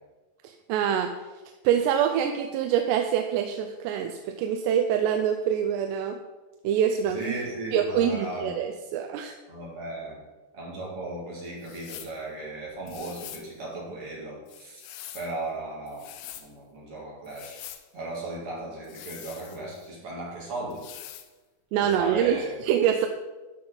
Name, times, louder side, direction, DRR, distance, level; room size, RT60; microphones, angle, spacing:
voice 1, 0.4-1.1 1.6-6.2 6.6-7.4 7.7-9.3 21.7-23.1, right 9 dB, 85° right, 5 dB, 2.7 m, -25 dB
voice 2, 7.0-8.5 9.5-10.2 10.5-14.8 15.1-16.0 16.4-17.6 17.9-20.8 21.8-22.5, right 2 dB, 40° right, -4 dB, 2.4 m, -36 dB
sound 1, 11.6-12.2 12.9-13.5 14.5-15.3 15.9-16.5 17.3-17.9 18.8-19.9 20.7-21.3, left 12 dB, 90° left, 2.9 m, -44 dB
12.5 x 6.0 x 3.9 m, 1.2 s
omnidirectional pair, 4.9 m